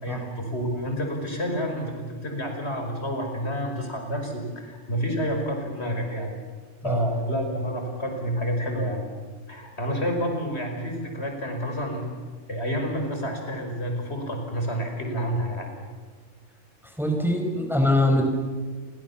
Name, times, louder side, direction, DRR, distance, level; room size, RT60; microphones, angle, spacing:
voice 1, 0.0-6.4 6.8-9.1 9.5-12.1 12.5-15.7, equal, 55° left, 3 dB, 5.7 m, -29 dB
voice 2, 16.8-18.2, left 1 dB, ahead, 3 dB, 4.8 m, -23 dB
30.0 x 25.0 x 7.2 m, 1.5 s
omnidirectional pair, 1.3 m